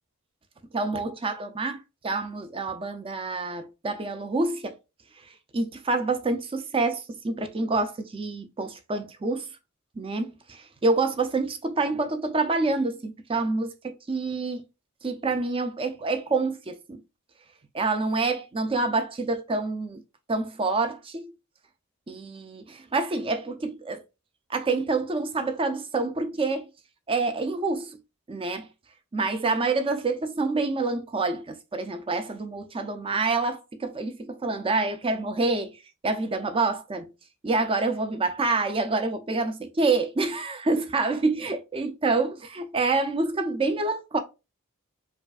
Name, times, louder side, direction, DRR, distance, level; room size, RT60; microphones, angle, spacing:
voice 1, 0.7-4.8 5.5-9.5 10.0-14.6 15.0-17.0 17.7-20.0 20.3-21.3 22.1-24.0 24.5-26.7 27.1-28.0 28.3-28.7 29.1-37.1 37.4-44.2, right 3 dB, 25° right, 0.5 m, -27 dB
4.9 x 2.4 x 2.4 m
head